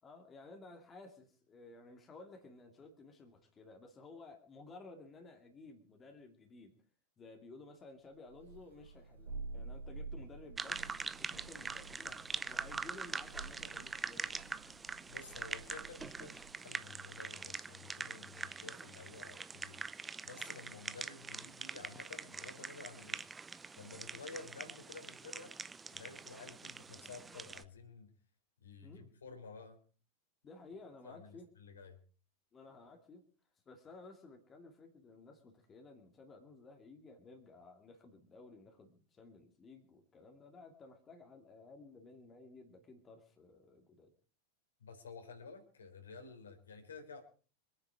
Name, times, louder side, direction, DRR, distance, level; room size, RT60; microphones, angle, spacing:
voice 1, 0.0-6.7 7.2-14.4 18.7-18.8 28.8-29.1 30.4-31.5 32.5-33.2 33.7-44.1, left 3 dB, 20° left, 4 dB, 2.6 m, -55 dB
Thunder, 8.3-16.7, right 3 dB, 70° right, 2.6 m, -50 dB
sound 1, 10.6-27.6, right 4 dB, 15° right, 0.7 m, -44 dB
voice 2, 15.1-19.8 20.2-23.2 23.8-25.6 25.9-28.1 28.6-29.8 31.0-32.0 44.8-47.2, left 4 dB, 70° left, 4 dB, 3.8 m, -52 dB
25.5 x 9.9 x 4.9 m, 0.40 s
figure-of-eight pair, 90°, 0 cm